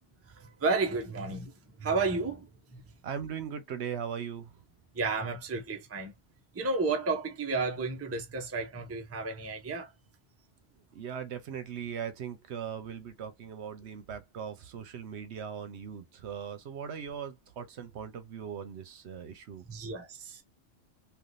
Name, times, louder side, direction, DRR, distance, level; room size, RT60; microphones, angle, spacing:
voice 1, 0.3-1.5 1.8-2.9 4.9-6.1 6.5-9.9 19.6-20.4, right 3 dB, 20° right, 0.5 m, -32 dB
voice 2, 3.0-4.5 10.9-19.6, right 8 dB, 75° right, 1.0 m, -39 dB
3.4 x 2.4 x 2.5 m
omnidirectional pair, 1.2 m